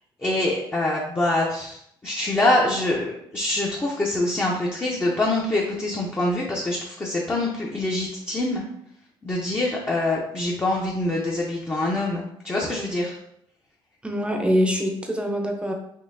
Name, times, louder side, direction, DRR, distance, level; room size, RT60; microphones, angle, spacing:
voice 1, 0.2-8.6 9.2-13.2, left 2 dB, 20° left, -4 dB, 0.8 m, -25 dB
voice 2, 14.0-15.7, equal, 10° right, 3 dB, 0.8 m, -24 dB
5.4 x 2.8 x 2.7 m, 0.73 s
cardioid pair, 95°, 10 cm